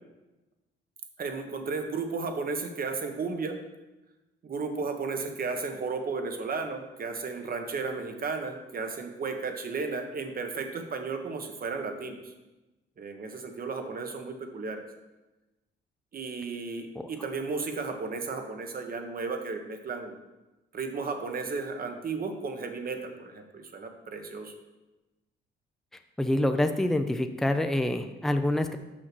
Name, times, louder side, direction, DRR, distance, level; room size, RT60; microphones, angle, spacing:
voice 1, 1.2-3.6 4.4-12.3 13.0-14.8 16.1-20.2 20.7-24.5, right 4 dB, 45° right, 5 dB, 1.3 m, -34 dB
voice 2, 26.2-28.8, left 1 dB, ahead, 7 dB, 0.6 m, -26 dB
6.4 x 5.9 x 6.0 m, 1.1 s
cardioid pair, 90°, 20 cm